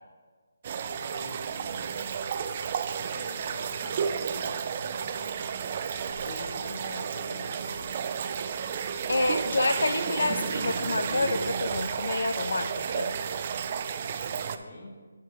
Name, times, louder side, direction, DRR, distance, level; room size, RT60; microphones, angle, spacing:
sound 1, 0.6-14.6, right 7 dB, 30° right, 0.3 m, -32 dB
voice 1, 0.9-2.3 3.0-5.5 6.2-8.2 14.4-15.0, left 2 dB, 35° left, 2 dB, 1.2 m, -46 dB
sound 2, 6.1-6.6 7.6-7.9 9.0-9.5 10.3-11.3, right 2 dB, 90° right, 1.4 m, -44 dB
voice 2, 9.1-13.1, left 2 dB, 75° left, 8 dB, 0.5 m, -28 dB
9.3 x 7.5 x 3.5 m, 1.5 s
hypercardioid pair, 170°, 0 cm